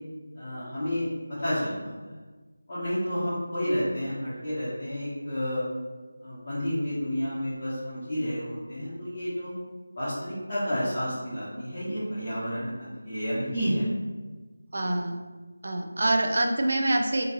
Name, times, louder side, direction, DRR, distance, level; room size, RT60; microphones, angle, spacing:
voice 1, 0.3-1.9 2.7-5.6 6.2-9.5 9.9-13.9 14.8-14.9, equal, 45° left, -13 dB, 1.3 m, -30 dB
voice 2, 14.7-15.2 15.6-17.2, right 1 dB, 55° right, 4 dB, 0.4 m, -26 dB
3.8 x 2.6 x 2.7 m, 1.3 s
figure-of-eight pair, 165°, 0 cm